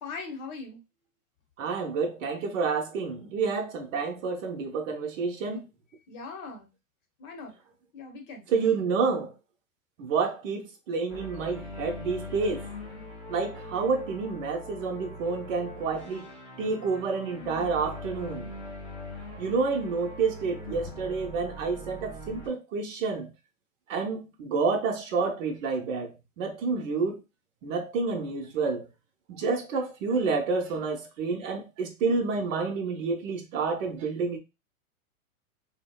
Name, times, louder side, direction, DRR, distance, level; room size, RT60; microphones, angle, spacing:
voice 1, 0.0-0.8 6.1-6.7 7.2-7.6 7.9-8.5, left 4 dB, 35° left, 0.8 m, -40 dB
voice 2, 1.6-5.7 8.5-9.3 10.0-12.7 13.3-16.3 16.6-18.5 19.4-23.3 23.9-27.2 27.6-28.9 29.3-34.4, right 4 dB, 60° right, 0.8 m, -29 dB
sound 1, 11.1-22.5, left 1 dB, 5° left, 0.3 m, -42 dB
2.7 x 2.1 x 2.3 m
hypercardioid pair, 115°, 43 cm